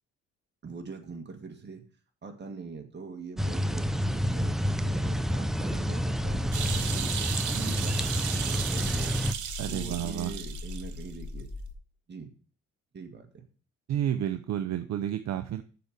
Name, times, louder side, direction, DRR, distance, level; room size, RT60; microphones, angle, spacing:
voice 1, 0.6-1.8 2.2-7.1 7.5-9.4 9.7-11.5 12.1-12.3 12.9-13.4, right 4 dB, 35° right, 4 dB, 1.9 m, -43 dB
sound 1, 3.4-9.3, equal, ahead, 0.4 m, -29 dB
sound 2, 6.2-11.7, left 3 dB, 70° left, 2.4 m, -41 dB
sound 3, 6.5-11.1 11.4-11.5, right 9 dB, 75° right, 1.1 m, -35 dB
voice 2, 9.6-10.3 13.9-15.6, right 11 dB, 60° right, 8 dB, 0.7 m, -30 dB
6.9 x 5.0 x 6.6 m, 0.40 s
cardioid pair, 90°, 30 cm